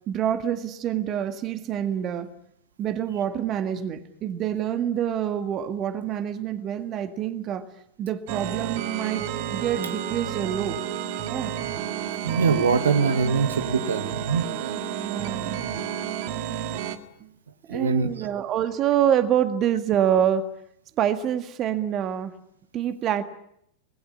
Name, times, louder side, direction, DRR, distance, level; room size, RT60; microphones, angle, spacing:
voice 1, 0.1-2.3 2.8-7.7 8.0-10.8 11.2-11.6 15.0-15.6 17.2-17.3 17.7-20.4 21.0-22.3 22.7-23.2, right 10 dB, 30° right, 1.7 m, -26 dB
sound 1, 8.3-17.0, right 10 dB, 50° right, 1.8 m, -31 dB
voice 2, 12.2-14.4 17.7-18.3, right 5 dB, 70° right, 1.5 m, -23 dB
26.0 x 20.0 x 9.8 m
figure-of-eight pair, 90°, 0 cm